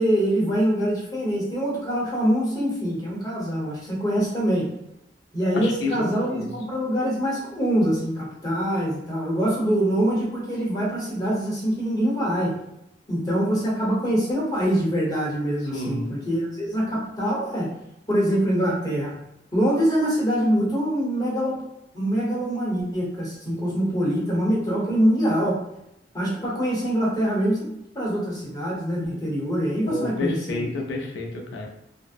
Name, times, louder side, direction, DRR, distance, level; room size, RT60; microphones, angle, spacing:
voice 1, 0.0-4.7 5.3-12.5 13.1-17.7 18.1-19.1 19.5-21.6 21.9-25.6 26.1-27.7 27.9-30.6, equal, 20° left, -6 dB, 0.8 m, -24 dB
voice 2, 5.5-6.5 15.7-16.1 29.9-31.7, left 2 dB, 80° left, 2 dB, 0.5 m, -30 dB
2.6 x 2.0 x 2.4 m, 0.81 s
head